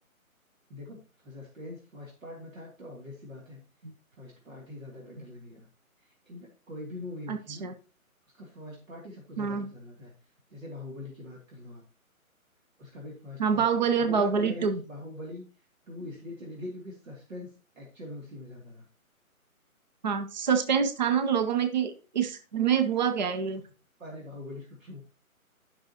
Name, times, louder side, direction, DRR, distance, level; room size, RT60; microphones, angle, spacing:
voice 1, 0.7-3.6 4.1-5.7 6.3-7.7 8.4-10.1 10.5-11.8 12.8-13.6 13.9-15.4 15.9-18.9 24.0-25.0, left 2 dB, 65° right, -2 dB, 2.8 m, -43 dB
voice 2, 7.3-7.7 9.4-9.7 13.4-14.8 20.0-23.6, right 7 dB, 30° right, 8 dB, 0.6 m, -26 dB
11.5 x 6.1 x 2.9 m, 0.35 s
figure-of-eight pair, 145°, 43 cm